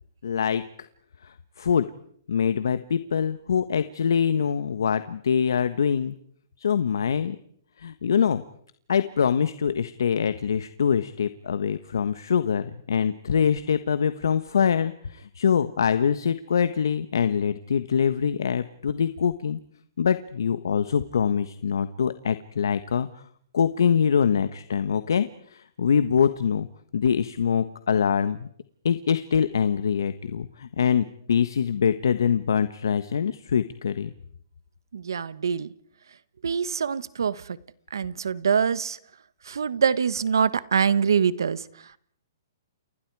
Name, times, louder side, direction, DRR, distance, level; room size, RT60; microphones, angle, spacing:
voice 1, 0.2-0.6 1.2-1.9 2.3-6.1 6.6-7.4 7.8-8.4 8.9-19.6 20.0-23.1 23.5-26.7 26.9-28.5 28.8-34.1, left 7 dB, 80° left, 12 dB, 1.4 m, -24 dB
voice 2, 34.9-35.7 36.4-37.6 37.9-39.0 39.4-42.0, right 6 dB, 85° right, 16 dB, 1.5 m, -24 dB
30.0 x 29.5 x 4.9 m, 0.65 s
hypercardioid pair, 155°, 2 cm